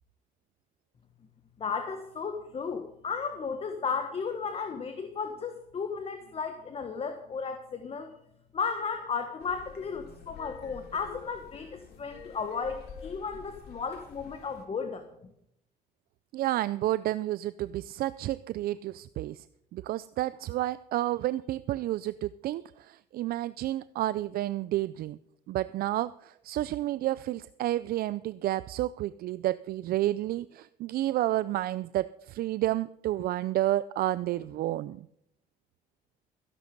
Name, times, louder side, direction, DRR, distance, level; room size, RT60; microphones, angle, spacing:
voice 1, 1.6-8.1 8.5-15.3, left 5 dB, 35° left, 7 dB, 1.4 m, -34 dB
sound 1, 9.4-14.6, left 6 dB, 70° left, 3.0 m, -48 dB
voice 2, 16.3-19.5 19.7-25.2 25.5-35.1, right 15 dB, 65° right, 16 dB, 0.4 m, -30 dB
15.0 x 11.0 x 5.4 m, 0.76 s
cardioid pair, 110°, 17 cm